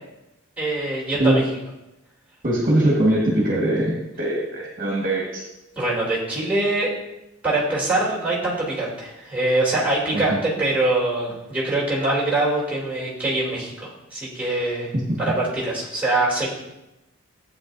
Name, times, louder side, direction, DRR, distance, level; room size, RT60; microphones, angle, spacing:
voice 1, 0.6-1.4 5.8-6.9 7.4-14.9 15.2-16.5, right 2 dB, 5° right, -6 dB, 2.9 m, -23 dB
voice 2, 2.4-5.4 10.1-10.4 14.9-15.2, right 1 dB, 40° right, -3 dB, 1.6 m, -21 dB
13.0 x 8.5 x 2.6 m, 0.93 s
head